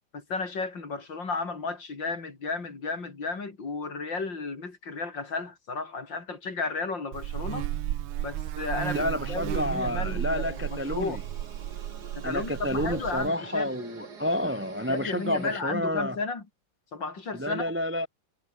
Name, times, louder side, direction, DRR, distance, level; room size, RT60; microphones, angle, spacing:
voice 1, 0.1-7.7 8.2-11.2 12.2-13.7 14.9-16.4 16.9-17.6, left 4 dB, 65° left, 4.6 m, -33 dB
Buzz, 7.1-13.3, right 13 dB, 85° right, 1.7 m, -33 dB
voice 2, 8.9-11.2 12.2-16.2 17.3-18.1, left 1 dB, 10° right, 0.7 m, -30 dB
sound 1, 9.6-15.6, right 5 dB, 55° right, 3.2 m, -46 dB
omnidirectional pair, 2.2 m